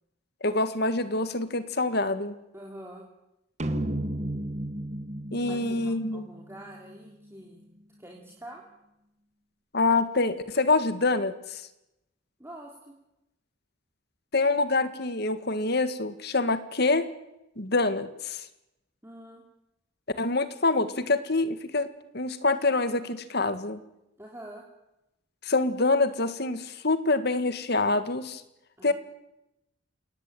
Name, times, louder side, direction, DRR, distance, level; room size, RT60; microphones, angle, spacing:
voice 1, 0.4-2.4 5.3-6.3 9.7-11.6 14.3-17.1 17.6-18.5 20.2-23.8 25.4-28.4 28.8-28.9, left 3 dB, 55° left, 11 dB, 1.9 m, -26 dB
voice 2, 2.5-3.0 5.4-7.7 8.0-8.6 12.4-12.9 19.0-19.4 24.2-24.6 28.8-28.9, right 1 dB, 10° right, -1 dB, 3.1 m, -45 dB
sound 1, 3.6-7.1, right 1 dB, 35° right, 1.8 m, -34 dB
29.0 x 18.0 x 9.3 m, 0.91 s
head